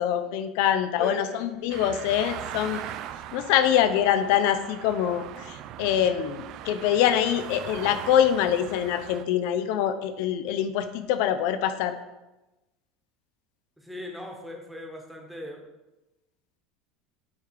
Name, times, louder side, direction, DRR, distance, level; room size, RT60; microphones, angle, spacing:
voice 1, 0.0-2.9 3.3-12.0, left 10 dB, 70° left, 10 dB, 0.5 m, -24 dB
voice 2, 1.0-1.5 13.8-15.6, left 1 dB, 5° right, 0 dB, 1.2 m, -38 dB
sound 1, 1.7-9.2, right 11 dB, 50° right, 0.4 m, -40 dB
9.2 x 3.3 x 4.7 m, 1.0 s
supercardioid pair, 140°, 0 cm